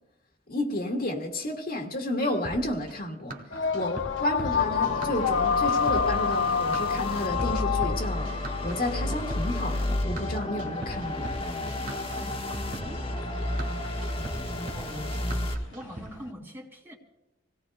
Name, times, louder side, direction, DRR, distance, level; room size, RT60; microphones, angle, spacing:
voice 1, 0.5-3.4 3.7-8.3 8.6-11.4, left 1 dB, 50° left, 1.9 m, -31 dB
sound 1, 2.4-16.1, right 1 dB, 50° right, 1.6 m, -41 dB
sound 2, 3.5-16.3, left 6 dB, 85° left, 0.6 m, -30 dB
sound 3, 4.5-15.5, left 1 dB, 30° left, 1.3 m, -32 dB
voice 2, 11.8-13.0 14.7-16.9, equal, 10° right, 1.8 m, -43 dB
27.5 x 17.5 x 2.2 m
head